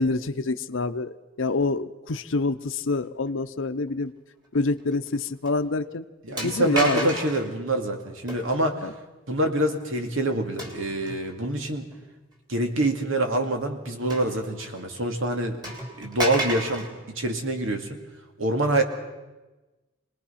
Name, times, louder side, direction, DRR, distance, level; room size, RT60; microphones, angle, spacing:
voice 1, 0.0-4.1 4.5-6.1 6.4-7.2 8.8-8.9, left 3 dB, 70° left, 10 dB, 0.7 m, -27 dB
sound 1, 4.9-5.1 5.5-5.6 6.4-7.5 8.3-8.7 10.6-11.3 11.9-12.0 14.1-14.8 15.1-15.2 15.6-16.9, right 1 dB, 20° right, 3.3 m, -32 dB
voice 2, 6.3-8.8 9.3-11.9 12.5-15.7 16.0-18.0 18.4-18.8, right 1 dB, 85° right, 5 dB, 2.3 m, -26 dB
25.5 x 20.0 x 5.8 m, 1.1 s
head